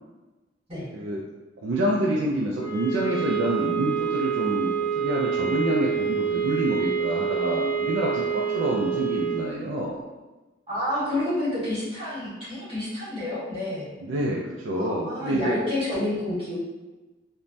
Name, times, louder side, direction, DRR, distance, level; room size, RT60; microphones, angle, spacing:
voice 1, 1.6-10.0 14.0-15.5, right 1 dB, 80° right, -2 dB, 0.3 m, -27 dB
sound 1, 2.6-9.5, right 7 dB, 40° left, 0.9 m, -27 dB
voice 2, 7.4-7.7 8.4-8.8 10.7-13.9 14.7-16.6, left 1 dB, 30° right, -11 dB, 1.5 m, -29 dB
3.1 x 2.2 x 2.5 m, 1.1 s
head